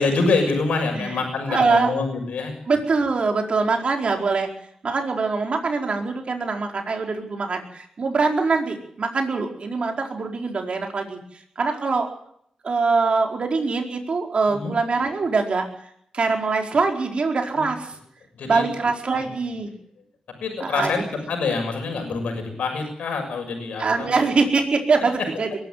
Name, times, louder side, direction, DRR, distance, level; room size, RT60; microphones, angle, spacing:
voice 1, 0.0-2.5 14.5-14.7 17.5-17.7 18.3-18.6 19.1-19.2 20.4-21.0 21.3-24.2, left 4 dB, 90° left, 4 dB, 6.7 m, -25 dB
voice 2, 1.5-1.9 2.7-4.5 4.8-11.2 11.6-12.1 12.6-15.7 16.1-17.9 18.4-19.7 20.6-20.9 23.8-25.5, right 4 dB, 55° right, 3 dB, 4.7 m, -23 dB
22.5 x 13.0 x 9.6 m, 0.68 s
cardioid pair, 75°, 2 cm